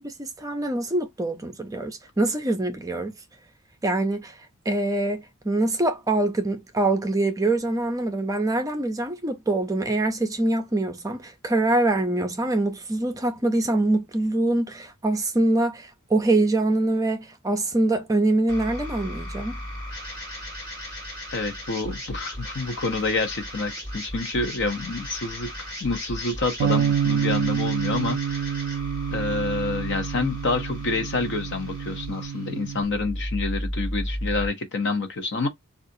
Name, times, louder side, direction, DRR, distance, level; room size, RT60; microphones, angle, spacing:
voice 1, 0.0-3.1 3.8-4.4 4.7-19.6, right 2 dB, 15° right, 0.5 m, -24 dB
sound 1, 18.5-34.5, equal, 20° left, 2.1 m, -35 dB
voice 2, 21.3-25.5 25.8-28.5 29.1-35.5, left 3 dB, 55° left, 0.7 m, -28 dB
Bass guitar, 26.6-32.8, right 8 dB, 80° right, 0.3 m, -28 dB
3.6 x 2.4 x 2.6 m
head